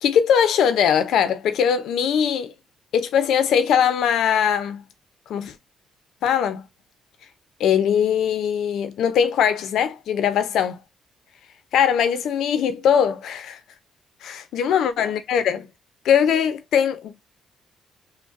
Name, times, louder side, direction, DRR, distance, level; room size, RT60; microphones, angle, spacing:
voice 1, 0.0-2.5 2.9-4.8 5.3-5.5 6.2-6.6 7.6-10.8 11.7-13.6 14.2-15.7 16.0-17.3, left 8 dB, 75° left, 0.5 m, -21 dB
3.9 x 2.1 x 2.5 m
cardioid pair, 90°, 0 cm